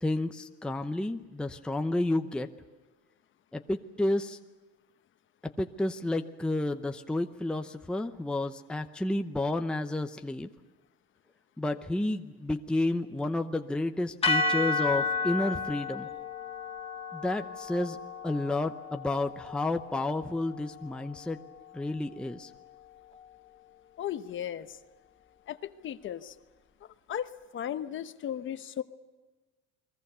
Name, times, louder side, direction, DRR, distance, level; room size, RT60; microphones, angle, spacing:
voice 1, 0.0-2.5 3.5-4.4 5.6-10.5 11.6-16.1 17.1-18.0 18.2-21.4 21.7-22.5, left 2 dB, 5° left, 6 dB, 0.7 m, -31 dB
sound 1, 14.2-22.5, left 3 dB, 20° left, 1.8 m, -33 dB
voice 2, 24.0-24.8 25.5-26.3 27.1-28.8, left 10 dB, 40° left, 10 dB, 1.1 m, -36 dB
29.5 x 22.0 x 6.8 m, 1.2 s
cardioid pair, 145°, 31 cm